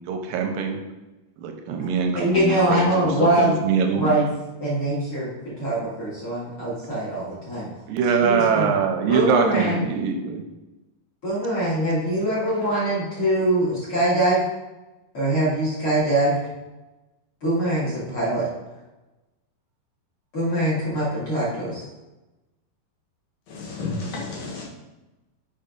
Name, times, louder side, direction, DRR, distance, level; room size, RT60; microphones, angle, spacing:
voice 1, 0.1-0.8 1.4-4.1 7.9-10.4, right 6 dB, 80° right, 4 dB, 2.3 m, -23 dB
voice 2, 2.1-3.6 4.0-4.2 4.6-5.3 5.6-7.7 8.2-8.7 9.1-9.8 11.2-14.4 15.1-16.3 17.4-18.5 20.3-21.8, right 1 dB, 40° left, -9 dB, 3.1 m, -23 dB
voice 3, 23.5-24.6, left 3 dB, 60° left, -3 dB, 2.7 m, -31 dB
6.7 x 5.3 x 5.2 m, 1.1 s
omnidirectional pair, 4.4 m